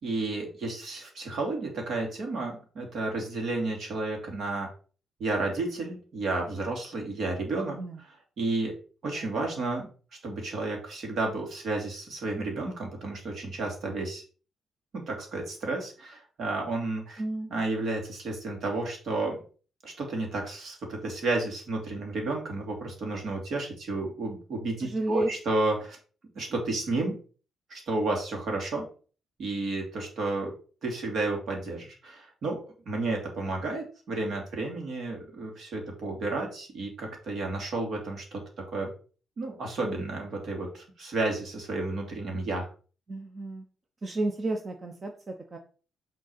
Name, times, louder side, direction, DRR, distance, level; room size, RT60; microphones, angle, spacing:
voice 1, 0.0-4.7 5.2-7.8 8.4-8.7 9.0-9.9 10.2-14.2 14.9-17.2 17.5-19.4 19.8-26.0 26.3-27.2 27.7-28.8 29.4-30.5 30.8-32.6 32.9-38.4 38.7-38.9 39.4-42.7, right 2 dB, 60° right, 1 dB, 2.9 m, -31 dB
voice 2, 7.7-8.0 9.1-9.3 17.2-17.5 24.8-25.3 43.1-43.7 44.0-45.6, right 2 dB, 35° right, 4 dB, 0.9 m, -32 dB
6.4 x 3.8 x 5.6 m, 0.38 s
cardioid pair, 90°, 0 cm